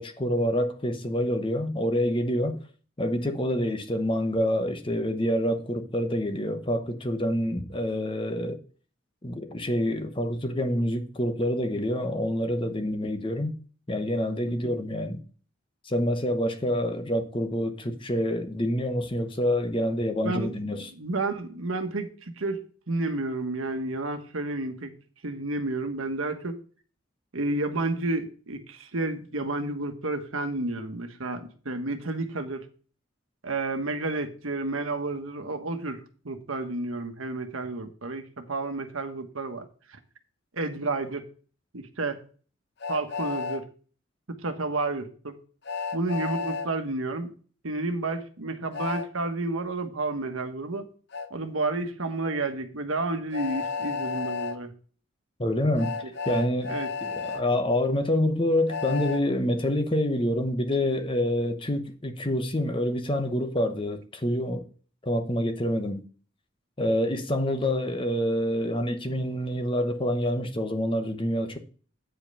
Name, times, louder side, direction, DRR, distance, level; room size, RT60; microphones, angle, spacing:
voice 1, 0.0-2.6 3.0-8.6 9.2-13.6 13.9-15.2 15.8-20.9 55.4-56.0 56.3-56.7 57.0-64.6 65.0-66.0 66.8-71.6, left 1 dB, 25° left, 0.9 m, -27 dB
voice 2, 20.2-24.9 25.2-26.6 27.3-32.7 33.4-40.0 40.6-41.3 41.7-42.2 42.9-43.7 44.4-45.4 45.9-47.3 47.6-50.9 51.3-54.7 56.7-56.9, right 2 dB, 85° right, 1.3 m, -31 dB
Train, 42.8-43.6 45.7-46.7 48.7-49.1 51.1-51.3 53.3-54.6 55.8-57.4 58.7-59.2, left 5 dB, 55° left, 0.8 m, -32 dB
9.0 x 5.3 x 5.5 m
head